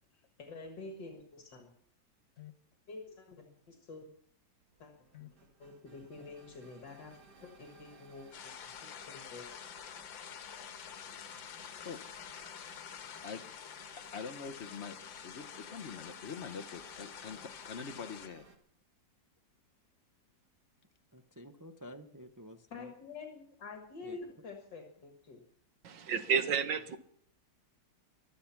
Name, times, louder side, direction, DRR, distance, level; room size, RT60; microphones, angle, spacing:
voice 1, 0.4-1.7 2.9-4.1 4.8-4.9 5.2-5.3 5.6-8.5 8.8-9.5 17.4-17.5 22.7-25.4, left 3 dB, 70° left, 2.4 m, -48 dB
sound 1, 4.6-18.6, right 3 dB, 60° right, 2.4 m, -59 dB
sound 2, 8.3-18.3, left 9 dB, 90° left, 1.8 m, -48 dB
voice 2, 14.1-15.0 15.2-18.5, left 5 dB, 50° left, 0.9 m, -44 dB
voice 3, 21.1-22.9 24.0-24.2, equal, 30° right, 0.3 m, -51 dB
voice 4, 25.8-27.0, right 6 dB, 75° right, 1.9 m, -31 dB
24.0 x 8.5 x 5.9 m
omnidirectional pair, 2.0 m